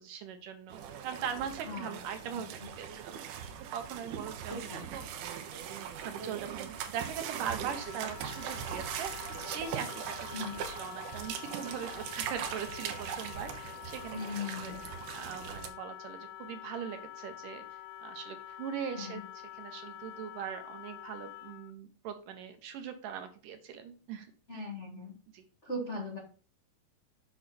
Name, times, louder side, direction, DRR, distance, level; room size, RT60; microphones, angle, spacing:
voice 1, 0.0-4.6 4.9-5.0 6.0-14.7 15.1-19.3 19.5-24.3 25.3-25.4, right 8 dB, 75° right, 7 dB, 2.1 m, -41 dB
sound 1, 0.7-15.7, right 8 dB, 90° right, 3.0 m, -40 dB
voice 2, 1.6-2.0 2.3-2.4 4.5-4.9 10.3-10.6 14.1-14.8 19.0-19.2 24.5-25.1 25.6-26.2, left 2 dB, 55° left, -2 dB, 0.7 m, -39 dB
Wind instrument woodwind instrument, 7.6-21.7, left 13 dB, 85° left, 1.9 m, -47 dB
7.7 x 6.0 x 4.1 m, 0.39 s
omnidirectional pair, 4.4 m